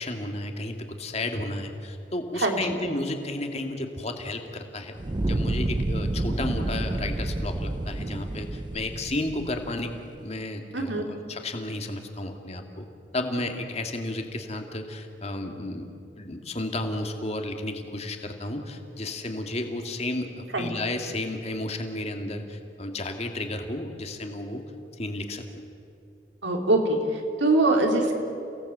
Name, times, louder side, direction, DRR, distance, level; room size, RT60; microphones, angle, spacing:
voice 1, 0.0-4.9 5.3-12.8 13.1-15.9 16.2-24.6 25.0-25.6, left 2 dB, 35° left, 4 dB, 2.3 m, -32 dB
voice 2, 2.4-2.8 10.7-11.0 20.5-20.7 26.4-28.1, right 2 dB, 85° right, 2 dB, 3.5 m, -23 dB
Fire, 5.0-10.1, right 1 dB, 25° right, 0.6 m, -29 dB
29.5 x 18.0 x 8.2 m, 2.7 s
head